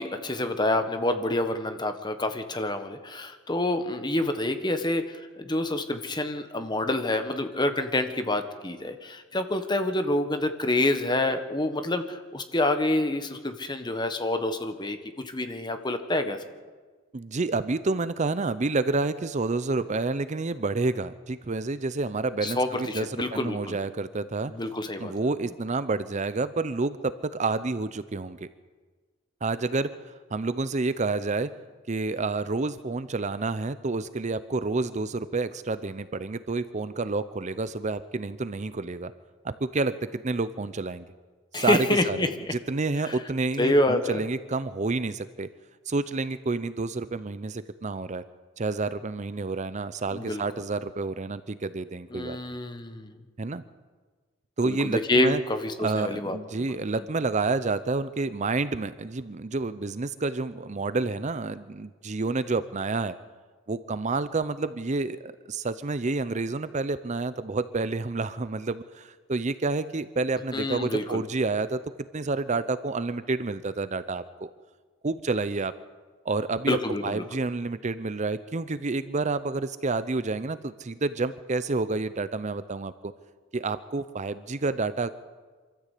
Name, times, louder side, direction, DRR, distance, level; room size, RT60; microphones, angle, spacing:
voice 1, 0.0-16.4 22.4-23.8 24.5-25.1 41.5-42.5 43.0-43.1 43.6-44.2 50.1-50.4 52.1-53.2 54.6-56.4 70.5-71.2 76.7-77.2, left 1 dB, 20° left, 8 dB, 1.4 m, -27 dB
voice 2, 17.1-24.5 25.0-28.5 29.4-29.9 30.3-31.5 31.9-39.1 39.4-41.1 41.5-42.3 42.7-45.5 45.9-48.2 48.6-52.6 53.4-53.6 54.6-55.4 55.8-63.1 63.7-71.8 72.1-74.5 75.0-75.7 76.2-76.8 77.0-83.1 83.5-85.1, right 3 dB, 35° right, 14 dB, 0.6 m, -29 dB
25.0 x 14.0 x 8.4 m, 1.4 s
head